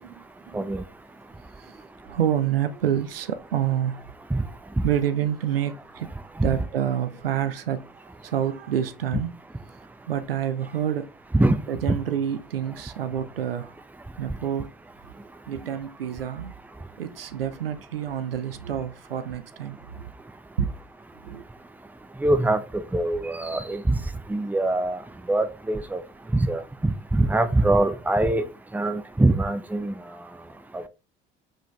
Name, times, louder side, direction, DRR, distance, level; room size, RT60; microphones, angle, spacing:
voice 1, 0.0-0.7 1.6-4.0 4.4-4.5 4.8-6.1 6.4-7.9 8.2-9.3 10.1-11.1 11.7-13.7 14.2-14.7 15.5-16.5 17.0-20.1 20.6-20.7 21.2-21.4, right 9 dB, 75° right, 0.8 m, -28 dB
voice 2, 22.2-24.0 24.3-25.0 25.3-26.0 26.3-28.4 28.7-29.9 30.7-30.9, right 2 dB, 5° right, 0.8 m, -23 dB
7.5 x 5.4 x 3.3 m
figure-of-eight pair, 60°, 29 cm